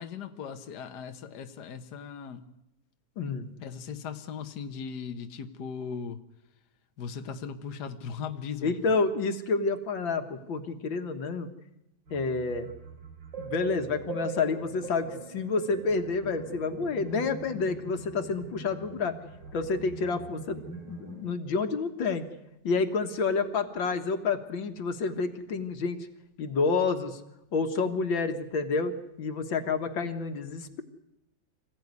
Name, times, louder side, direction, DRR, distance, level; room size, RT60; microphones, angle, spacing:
voice 1, 0.0-2.5 3.6-6.2 7.0-8.8, left 6 dB, 60° left, 7 dB, 1.7 m, -38 dB
voice 2, 3.2-3.5 8.6-11.5 12.1-12.7 13.4-19.2 19.5-22.3 22.6-26.1 26.4-27.2 27.5-28.9 29.2-30.8, left 4 dB, 85° left, 7 dB, 2.3 m, -29 dB
sound 1, 12.1-21.3, right 3 dB, 70° right, 3.8 m, -42 dB
26.5 x 15.5 x 9.6 m, 0.88 s
omnidirectional pair, 2.1 m